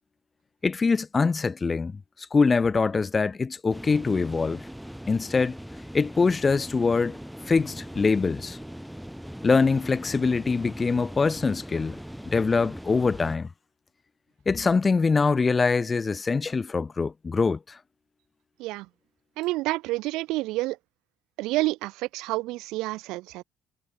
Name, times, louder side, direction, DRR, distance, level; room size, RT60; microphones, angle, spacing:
voice 1, 0.6-2.0 2.3-4.6 5.1-5.6 5.9-7.2 7.5-8.6 9.4-12.0 12.3-13.5 14.5-17.8, left 4 dB, 25° left, 0.4 m, -23 dB
sound 1, 3.7-13.4, equal, ahead, 3.6 m, -40 dB
voice 2, 19.4-20.8 21.4-23.4, right 20 dB, 85° right, 0.7 m, -29 dB
cardioid pair, 125°, 0 cm